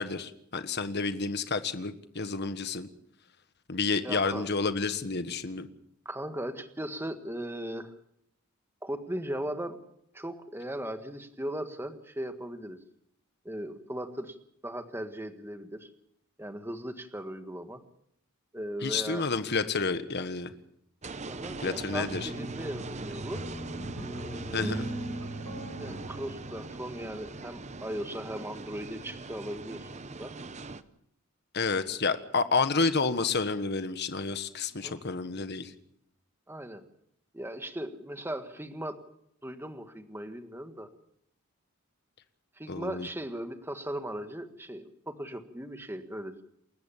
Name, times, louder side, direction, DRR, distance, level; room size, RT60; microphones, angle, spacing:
voice 1, 0.0-2.9 3.7-5.7 18.8-20.5 21.6-22.3 24.5-24.9 31.5-35.7 42.7-43.1, left 4 dB, 50° left, 10 dB, 1.4 m, -30 dB
voice 2, 4.0-4.5 6.0-7.9 8.8-9.8 10.1-12.8 13.4-14.4 14.6-15.9 16.4-17.8 18.5-19.2 21.3-23.4 24.2-24.8 25.7-30.3 31.9-32.1 34.8-34.9 36.5-36.8 37.3-39.0 39.4-40.9 42.6-46.4, right 1 dB, 10° right, 7 dB, 1.6 m, -38 dB
sound 1, 21.0-30.8, right 3 dB, 30° right, 0.9 m, -41 dB
sound 2, 22.0-27.4, right 1 dB, 75° right, 4.9 m, -39 dB
28.5 x 14.5 x 7.2 m, 0.73 s
head